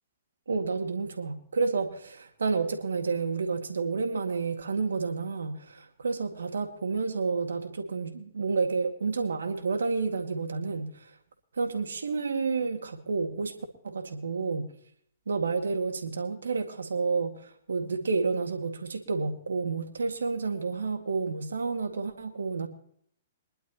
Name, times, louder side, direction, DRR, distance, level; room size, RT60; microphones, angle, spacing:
voice 1, 0.5-11.1 11.5-13.5 13.8-14.7 15.3-22.7, right 4 dB, 75° right, 6 dB, 2.0 m, -30 dB
24.0 x 11.5 x 2.9 m, 0.65 s
figure-of-eight pair, 120°, 0 cm